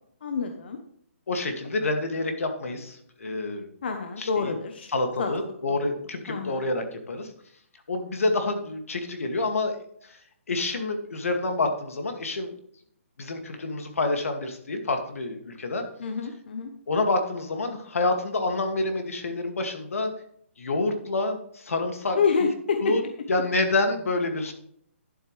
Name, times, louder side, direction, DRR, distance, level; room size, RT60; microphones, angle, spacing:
voice 1, 0.2-0.8 3.8-4.9 5.2-5.8 6.3-6.6 16.0-16.7 22.2-22.9, left 5 dB, 45° left, 6 dB, 1.0 m, -28 dB
voice 2, 1.3-3.7 4.2-4.5 4.9-7.3 7.9-9.8 10.0-10.2 10.5-12.5 13.2-15.9 16.9-20.1 20.6-22.5 22.8-23.0 23.3-24.5, left 2 dB, 75° left, 5 dB, 2.2 m, -28 dB
11.5 x 7.8 x 3.3 m, 0.68 s
hypercardioid pair, 175°, 8 cm